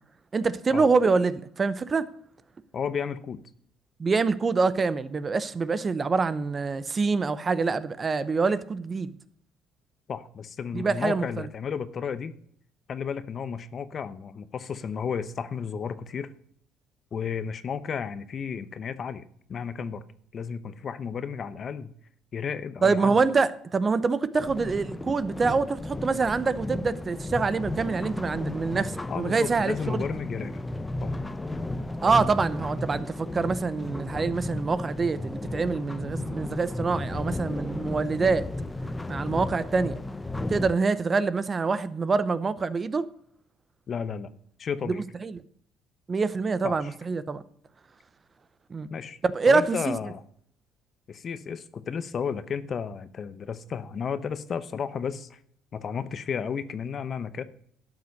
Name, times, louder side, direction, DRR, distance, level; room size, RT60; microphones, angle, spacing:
voice 1, 0.3-2.1 4.0-9.1 10.7-11.5 22.8-30.0 32.0-38.5 39.1-40.0 40.5-43.1 45.2-45.4 46.1-47.4 48.7-48.9 49.3-50.0, right 4 dB, 35° right, 0.7 m, -25 dB
voice 2, 2.7-3.4 10.1-12.3 12.9-16.3 17.1-20.0 20.3-21.9 22.3-23.2 29.1-30.6 31.0-31.1 43.9-44.3 44.6-45.0 46.6-46.9 48.9-49.2 49.5-50.2 51.1-55.4 55.7-57.4, left 6 dB, 50° left, 0.8 m, -33 dB
sound 1, 24.5-40.7, left 2 dB, 15° left, 0.7 m, -34 dB
12.0 x 5.9 x 6.4 m
supercardioid pair, 80°, 0 cm